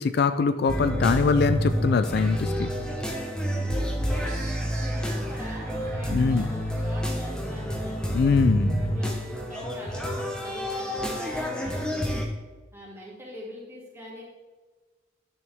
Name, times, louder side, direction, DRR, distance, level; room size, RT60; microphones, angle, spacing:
voice 1, 0.0-2.7 6.1-6.5 8.1-8.8, left 4 dB, 55° left, 10 dB, 0.3 m, -23 dB
sound 1, 0.7-12.3, equal, 5° left, 0.8 m, -29 dB
voice 2, 2.6-4.4 4.8-8.0 8.5-12.2 12.7-14.2, equal, 10° right, -5 dB, 2.4 m, -43 dB
sound 2, 4.2-9.5, right 3 dB, 40° right, 0.9 m, -46 dB
10.5 x 6.3 x 3.4 m, 1.3 s
head